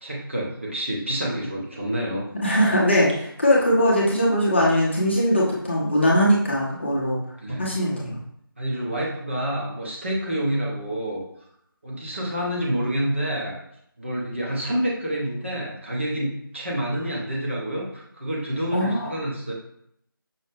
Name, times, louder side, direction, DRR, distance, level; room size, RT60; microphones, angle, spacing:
voice 1, 0.0-2.3 7.4-7.8 8.6-11.2 11.8-13.6 14.0-19.5, equal, 30° right, -3 dB, 0.7 m, -28 dB
voice 2, 2.4-7.2 7.6-8.2 18.7-19.2, equal, 30° left, -5 dB, 0.7 m, -21 dB
5.5 x 2.0 x 3.4 m, 0.72 s
figure-of-eight pair, 165°, 12 cm